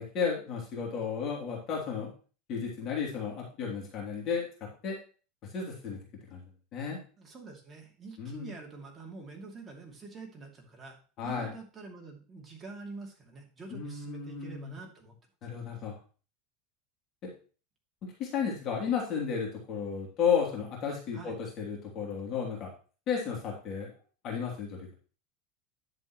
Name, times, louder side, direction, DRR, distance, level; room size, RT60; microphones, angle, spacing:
voice 1, 0.0-2.1 2.5-4.5 4.8-5.0 5.5-6.0 6.3-6.4 6.7-7.0 8.2-8.5 11.2-11.5 13.7-14.7 15.4-15.9 17.2-17.3 18.2-22.7 23.1-23.9 24.2-24.9, left 6 dB, 35° left, -2 dB, 3.1 m, -33 dB
voice 2, 7.2-11.0 11.2-15.2 21.1-21.4, right 3 dB, 15° right, 0 dB, 2.6 m, -46 dB
10.5 x 7.4 x 3.1 m, 0.37 s
supercardioid pair, 150°, 0 cm